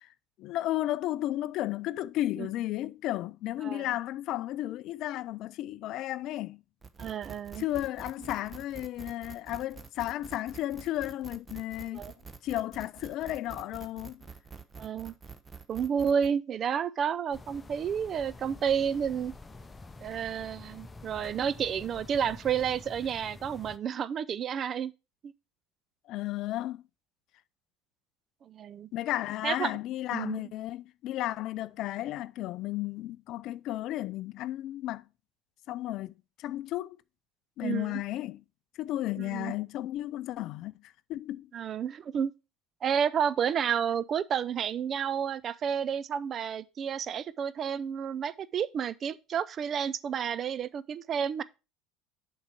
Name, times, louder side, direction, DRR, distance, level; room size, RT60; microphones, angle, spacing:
voice 1, 0.4-6.6 7.6-12.0 12.4-14.2 26.1-26.9 28.9-35.1 35.7-36.1 36.4-37.0 37.6-38.4 38.8-41.5, left 14 dB, 50° left, 0.4 m, -33 dB
sound 1, 6.8-16.3, right 5 dB, 20° right, 0.9 m, -47 dB
voice 2, 7.0-7.6 11.9-12.1 14.8-15.1 15.7-19.3 20.0-24.9 25.2-25.3 28.4-28.9 29.4-29.7 30.1-30.4 37.6-38.0 39.2-39.5 41.5-42.3 42.8-51.4, right 8 dB, 40° right, 0.5 m, -31 dB
sound 2, 17.3-23.8, left 3 dB, 20° left, 0.7 m, -48 dB
7.2 x 5.4 x 4.6 m
figure-of-eight pair, 70°, 0 cm